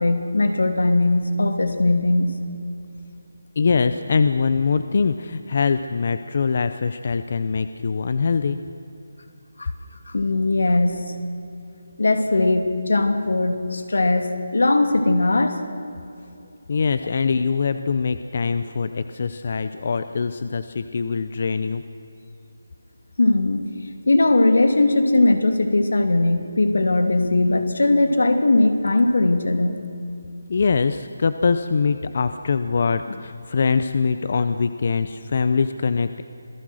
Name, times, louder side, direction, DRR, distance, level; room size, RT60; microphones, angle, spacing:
voice 1, 0.0-2.4 9.6-9.7 10.1-11.1 12.0-15.6 23.2-23.7 24.1-29.8, left 2 dB, 70° left, 7 dB, 2.7 m, -19 dB
voice 2, 3.6-8.6 16.7-21.8 30.5-36.2, left 5 dB, 30° left, 11 dB, 0.6 m, -23 dB
27.0 x 18.5 x 6.4 m, 2.7 s
hypercardioid pair, 180°, 0 cm